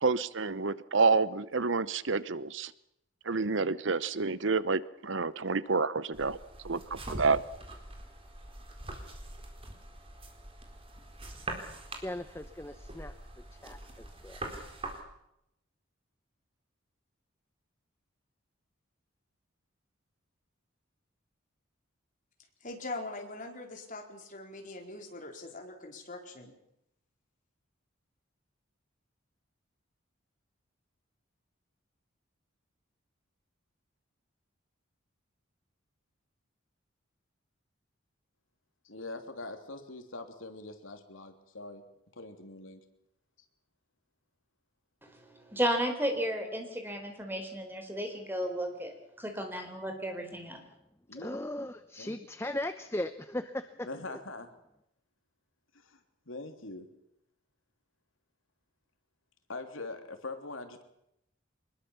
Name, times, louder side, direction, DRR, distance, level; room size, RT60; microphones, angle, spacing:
voice 1, 0.0-2.7 3.3-6.4 6.6-7.4, right 4 dB, 65° right, 16 dB, 0.9 m, -28 dB
sound 1, 6.1-15.0, right 2 dB, 30° right, 4.3 m, -44 dB
voice 2, 12.0-13.1 13.6-14.5 51.1-54.2, left 1 dB, 15° left, 10 dB, 0.8 m, -38 dB
voice 3, 22.6-26.5, left 2 dB, 40° left, 3 dB, 4.5 m, -42 dB
voice 4, 38.8-41.8 42.2-42.8 51.1-51.4 52.0-52.2 53.8-54.5 55.7-56.0 56.3-56.9 59.5-60.8, left 2 dB, 80° left, 6 dB, 3.2 m, -43 dB
voice 5, 45.0-50.6, equal, 10° right, 5 dB, 4.3 m, -34 dB
24.5 x 21.0 x 7.2 m, 0.80 s
head